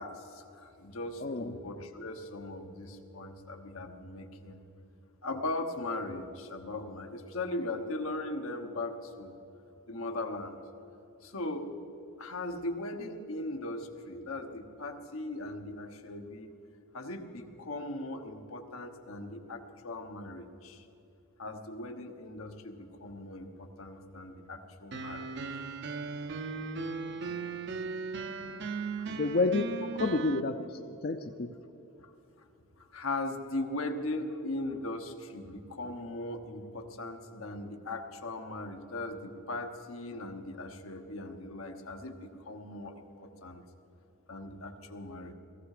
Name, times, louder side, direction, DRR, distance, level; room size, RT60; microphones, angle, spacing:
voice 1, 0.0-4.6 5.2-9.3 9.9-10.6 11.2-11.7 12.2-16.5 16.9-20.9 21.4-25.7 32.0-32.1 32.4-32.5 32.8-43.6 44.3-45.3, left 2 dB, 85° left, 4 dB, 1.3 m, -39 dB
voice 2, 1.2-1.5 28.3-28.4 29.0-31.5, left 3 dB, 45° left, 7 dB, 0.5 m, -30 dB
sound 1, 24.9-30.4, right 4 dB, 55° right, 0.6 m, -37 dB
17.0 x 15.5 x 5.0 m, 3.0 s
head